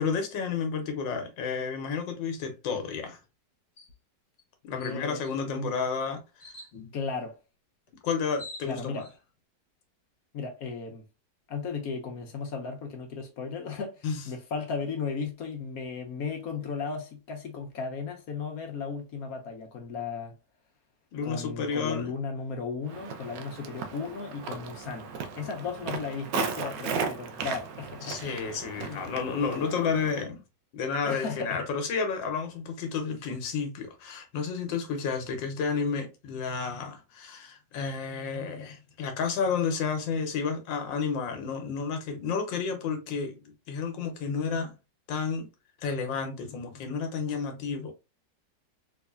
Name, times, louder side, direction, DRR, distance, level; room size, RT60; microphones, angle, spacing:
voice 1, 0.0-3.2 4.6-6.2 6.7-6.9 8.0-9.0 14.0-14.2 21.1-22.1 28.0-30.4 30.7-44.7 45.1-45.5 45.8-47.9, left 5 dB, 85° left, 1.6 m, -31 dB
sound 1, 3.8-4.0 4.4-4.5 4.8-5.3 6.4-6.7 7.9-8.0 8.2-9.1, left 1 dB, 40° left, 1.1 m, -45 dB
voice 2, 4.7-5.2 5.6-5.7 6.9-7.4 8.6-9.1 10.3-11.0 11.5-20.3 21.2-25.1 25.4-28.3 28.7-29.0 31.0-31.7, left 5 dB, 65° left, 1.1 m, -35 dB
Walk footsteps, 22.9-30.2, right 5 dB, 80° right, 1.2 m, -36 dB
3.6 x 3.1 x 2.4 m
omnidirectional pair, 2.0 m